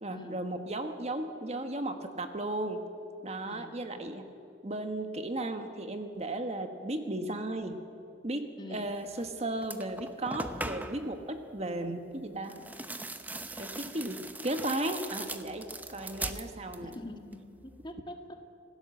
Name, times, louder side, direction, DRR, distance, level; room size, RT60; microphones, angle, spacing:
voice 1, 0.0-2.8 3.2-4.3 4.6-7.8 8.2-12.6 13.6-17.0, right 1 dB, 35° right, 7 dB, 1.4 m, -35 dB
voice 2, 3.4-3.8 8.6-8.9 16.8-18.6, left 1 dB, 25° left, 5 dB, 1.7 m, -45 dB
sound 1, 9.2-9.3 9.6-11.1 12.4-17.0 17.3-17.9, right 2 dB, 10° right, 0.8 m, -40 dB
26.0 x 17.0 x 7.8 m, 2.6 s
head